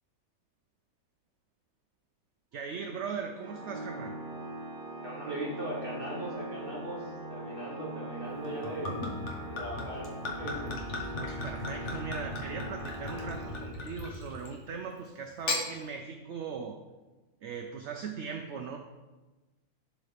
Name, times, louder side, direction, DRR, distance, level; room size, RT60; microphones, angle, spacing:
voice 1, 2.5-4.1 11.2-16.8 17.4-18.8, right 5 dB, 70° right, 4 dB, 0.7 m, -39 dB
Organ, 3.4-14.2, right 1 dB, 85° right, 1.4 m, -41 dB
voice 2, 5.0-8.9 9.5-10.7, right 1 dB, 40° right, -5 dB, 1.3 m, -39 dB
Gurgling / Chink clink / Liquid, 8.4-14.6 15.3-15.7, left 3 dB, 50° left, 1.3 m, -37 dB
11.0 x 4.1 x 3.3 m, 1.2 s
omnidirectional pair, 1.7 m